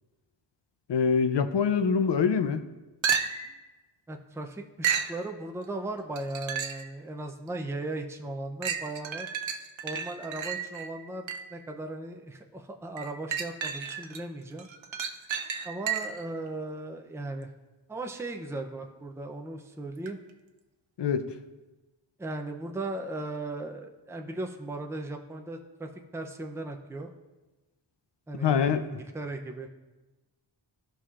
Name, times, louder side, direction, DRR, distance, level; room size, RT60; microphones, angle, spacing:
voice 1, 0.9-2.6 21.0-21.3 28.4-29.0, left 6 dB, 65° left, 10 dB, 0.6 m, -25 dB
sound 1, 3.0-3.6 4.8-5.2 6.2-6.9 7.5-7.6 8.6-11.6 13.0-14.2 14.6-16.3 20.1-20.2, right 7 dB, 85° right, 0.7 m, -32 dB
voice 2, 4.1-9.3 9.8-14.7 15.6-17.5 17.9-20.2 22.2-27.1 28.3-29.7, right 2 dB, 5° right, 3 dB, 0.5 m, -37 dB
15.0 x 5.6 x 2.5 m, 1.1 s
wide cardioid pair, 120°, 45 cm